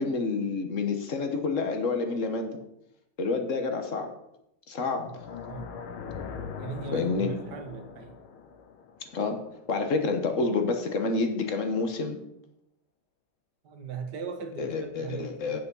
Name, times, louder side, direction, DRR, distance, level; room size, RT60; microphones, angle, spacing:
voice 1, 0.0-2.6 3.2-4.1 4.7-5.1 6.9-7.4 9.1-9.4 9.7-12.2 14.6-15.6, left 4 dB, 45° left, 1.3 m, -28 dB
sound 1, 5.0-10.1, left 6 dB, 85° left, 1.9 m, -41 dB
voice 2, 6.6-8.1 13.6-14.7 15.0-15.6, right 5 dB, 55° right, 1.8 m, -38 dB
8.7 x 8.2 x 5.5 m
omnidirectional pair, 2.3 m